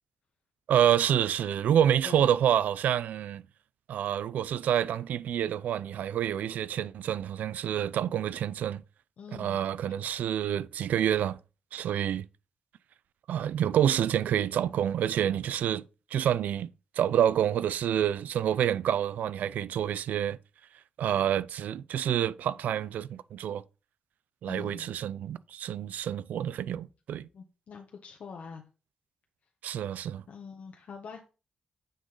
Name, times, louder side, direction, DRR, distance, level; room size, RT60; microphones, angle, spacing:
voice 1, 0.7-3.4 3.9-8.8 9.4-11.4 11.7-12.3 13.3-15.8 16.1-16.7 17.0-20.4 21.0-23.6 24.4-27.3 29.6-30.2, right 10 dB, 85° right, 0.4 m, -28 dB
voice 2, 9.2-9.6 24.4-24.9 27.3-28.6 30.3-31.3, left 5 dB, 65° left, 1.0 m, -44 dB
9.1 x 3.9 x 3.9 m
cardioid pair, 85°, 3 cm